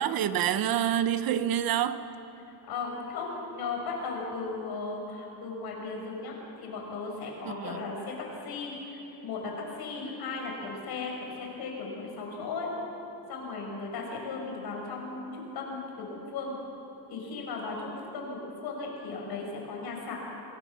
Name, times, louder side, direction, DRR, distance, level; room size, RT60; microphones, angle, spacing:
voice 1, 0.0-2.0 7.4-7.8, right 10 dB, 60° right, 1.0 m, -27 dB
voice 2, 2.5-8.1 8.4-12.7 13.3-16.6 17.1-20.2, left 4 dB, 65° left, 6.6 m, -36 dB
29.0 x 21.0 x 7.1 m
cardioid pair, 175°, 41 cm